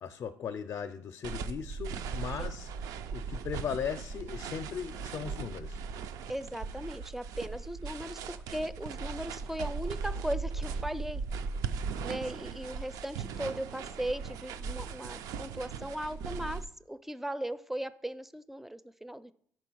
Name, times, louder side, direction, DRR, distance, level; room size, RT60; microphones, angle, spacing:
voice 1, 0.0-2.7 3.1-5.8, left 7 dB, 55° left, 8 dB, 0.5 m, -38 dB
sound 1, 1.2-16.6, right 5 dB, 85° right, 0.4 m, -38 dB
voice 2, 6.3-11.2 12.0-16.6 16.9-19.3, right 1 dB, 5° right, 14 dB, 0.4 m, -38 dB
5.5 x 4.4 x 6.2 m, 0.63 s
cardioid pair, 95°, 6 cm